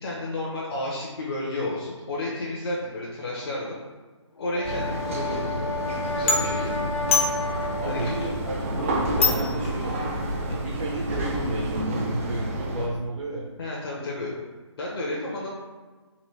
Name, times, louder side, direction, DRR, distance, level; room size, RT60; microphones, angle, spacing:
voice 1, 0.0-3.8 4.4-5.8 6.1-6.9 7.9-8.1 13.6-14.3 14.8-15.5, left 1 dB, 50° left, -5 dB, 0.8 m, -32 dB
Brass instrument, 4.4-8.6, left 3 dB, 85° left, 0.7 m, -32 dB
sound 1, 4.6-12.9, right 1 dB, 25° right, 0.5 m, -30 dB
sound 2, 6.0-11.8, left 3 dB, 25° left, 0.5 m, -30 dB
voice 2, 7.8-13.5, right 2 dB, 80° right, -3 dB, 0.8 m, -32 dB
4.0 x 2.6 x 3.2 m, 1.3 s
figure-of-eight pair, 155°, 16 cm